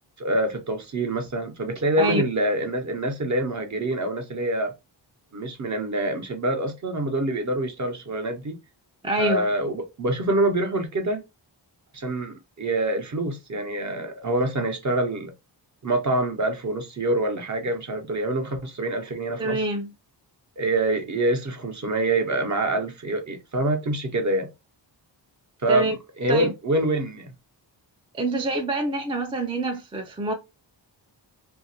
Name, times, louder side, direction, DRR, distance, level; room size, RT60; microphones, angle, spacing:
voice 1, 0.2-4.7 5.3-8.6 9.2-11.2 11.9-15.3 15.8-19.6 20.6-24.5 25.6-27.3, right 1 dB, 40° right, 0.7 m, -26 dB
voice 2, 9.0-9.5 19.4-19.9 25.7-25.9 26.3-26.5 28.1-30.3, right 2 dB, 15° right, 0.3 m, -26 dB
2.8 x 2.5 x 2.7 m
wide cardioid pair, 135°, 46 cm